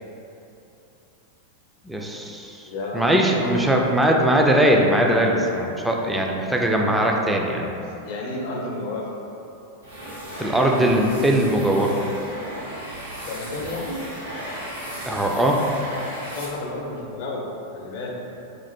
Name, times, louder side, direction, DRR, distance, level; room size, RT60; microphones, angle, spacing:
voice 1, 1.9-2.7 2.9-7.7 10.4-12.1 15.1-15.6, right 1 dB, 5° right, 0 dB, 0.3 m, -20 dB
voice 2, 2.7-3.7 8.0-9.1 13.2-14.0 16.1-18.2, left 2 dB, 50° left, -1 dB, 0.6 m, -31 dB
sound 1, 9.8-16.9, equal, 80° right, 1.4 m, -35 dB
3.2 x 2.4 x 4.1 m, 2.8 s
figure-of-eight pair, 90°, 0 cm